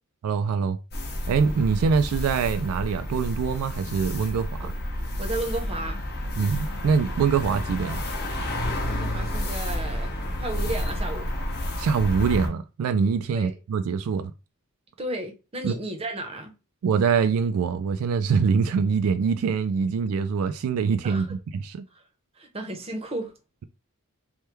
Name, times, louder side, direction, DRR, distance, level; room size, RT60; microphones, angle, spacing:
voice 1, 0.2-0.8 1.3-4.7 6.4-8.0 11.8-14.3 15.6-15.7 16.8-21.8, right 6 dB, 75° right, 0.3 m, -24 dB
sound 1, 0.9-12.5, left 1 dB, 45° left, 0.8 m, -30 dB
voice 2, 5.2-6.0 8.9-10.1 10.4-11.2 13.3-13.5 15.0-16.5 21.0-21.3 22.4-23.3, right 1 dB, 25° right, 0.7 m, -33 dB
3.0 x 2.2 x 3.3 m
head